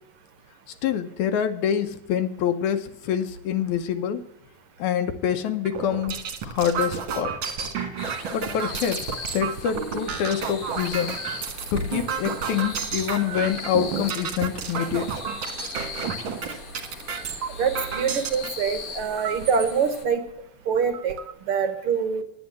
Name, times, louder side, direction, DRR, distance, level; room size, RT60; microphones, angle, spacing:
voice 1, 0.8-4.2 4.8-6.2 6.4-7.3 8.3-9.1 9.3-11.2 11.7-15.1, left 9 dB, 80° left, 8 dB, 2.0 m, -26 dB
sound 1, 5.6-18.5 19.2-19.7 20.3-20.4 20.7-21.3, right 6 dB, 50° right, 1.7 m, -31 dB
sound 2, 8.0-20.0, left 5 dB, 60° left, 0.8 m, -40 dB
voice 2, 17.6-20.2 20.7-21.2 21.5-22.2, right 6 dB, 70° right, 9 dB, 1.3 m, -24 dB
9.8 x 9.4 x 7.2 m, 0.84 s
omnidirectional pair, 3.6 m